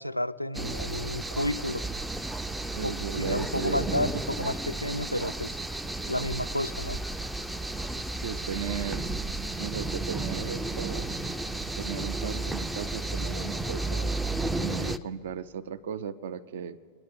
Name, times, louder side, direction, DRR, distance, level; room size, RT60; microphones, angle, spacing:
voice 1, 0.0-1.9 2.8-5.6 6.1-7.0, left 1 dB, 90° left, 13 dB, 0.3 m, -31 dB
sound 1, 0.5-15.0, right 2 dB, 5° right, 0.4 m, -33 dB
voice 2, 2.7-3.8 8.2-9.1 9.6-11.1 11.8-14.1 14.6-16.8, right 7 dB, 60° right, 12 dB, 0.5 m, -36 dB
24.5 x 10.5 x 3.6 m, 2.3 s
figure-of-eight pair, 90°, 0 cm